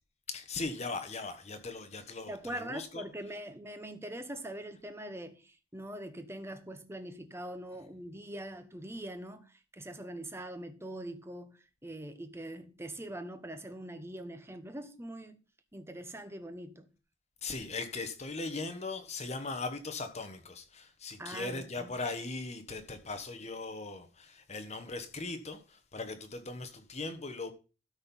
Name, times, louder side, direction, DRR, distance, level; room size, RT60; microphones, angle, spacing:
voice 1, 0.3-3.0 17.4-27.5, left 3 dB, 35° left, 1.2 m, -39 dB
voice 2, 2.3-15.4 15.7-16.9 21.2-22.0, right 1 dB, 10° right, 0.8 m, -43 dB
13.0 x 4.4 x 5.4 m
head